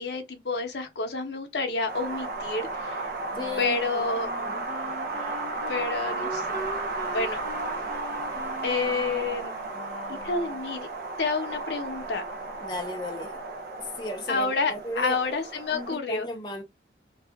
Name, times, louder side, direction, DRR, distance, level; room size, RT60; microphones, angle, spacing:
voice 1, 0.0-3.1 3.6-4.3 5.7-6.5 7.1-7.4 8.6-9.5 10.1-10.9 11.2-12.2 14.3-16.3, left 3 dB, 80° left, 0.7 m, -29 dB
Wind, 1.9-15.9, right 3 dB, 55° right, 0.6 m, -34 dB
voice 2, 3.3-4.1 4.4-4.6 12.6-13.4 13.8-15.3 15.7-16.6, left 2 dB, 25° left, 0.6 m, -35 dB
Wind instrument woodwind instrument, 3.3-10.7, equal, 15° right, 1.2 m, -40 dB
2.7 x 2.3 x 2.2 m
head